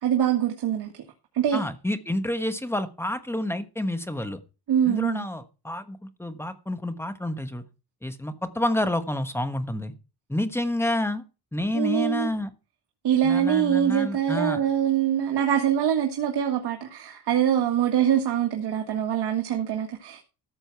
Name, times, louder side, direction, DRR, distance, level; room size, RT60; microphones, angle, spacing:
voice 1, 0.0-1.0 1.3-1.6 4.7-5.3 11.7-12.3 13.0-20.2, right 9 dB, 80° right, 1.9 m, -24 dB
voice 2, 1.5-4.4 4.9-7.6 8.0-9.9 10.3-11.2 11.5-12.5 13.2-14.6, left 1 dB, 5° left, 1.2 m, -29 dB
13.5 x 7.5 x 4.6 m
wide cardioid pair, 150°, 39 cm